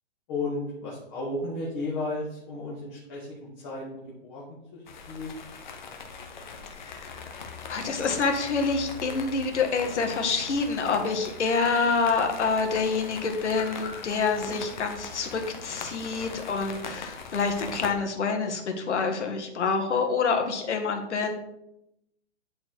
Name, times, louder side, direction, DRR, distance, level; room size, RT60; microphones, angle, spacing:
voice 1, 0.3-3.8 4.2-5.4, left 2 dB, 20° left, -6 dB, 1.4 m, -34 dB
Rain on umbrella, 4.9-17.9, left 5 dB, 40° left, 1.1 m, -41 dB
voice 2, 7.7-21.3, left 4 dB, 80° left, 4 dB, 1.9 m, -27 dB
10.5 x 4.4 x 4.7 m, 0.82 s
hypercardioid pair, 180°, 34 cm